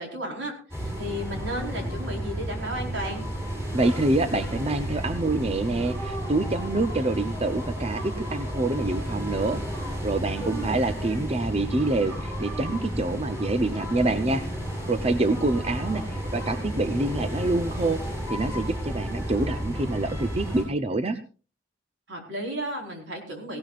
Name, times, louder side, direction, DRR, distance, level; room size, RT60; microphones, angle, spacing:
voice 1, 0.0-3.3 10.4-10.8 22.1-23.6, equal, 80° right, 1 dB, 4.5 m, -34 dB
sound 1, 0.7-20.6, equal, 15° right, 7.2 m, -32 dB
voice 2, 3.7-14.4 14.9-18.0 18.3-21.2, right 2 dB, 35° right, 9 dB, 0.7 m, -26 dB
18.0 x 17.0 x 2.5 m, 0.36 s
head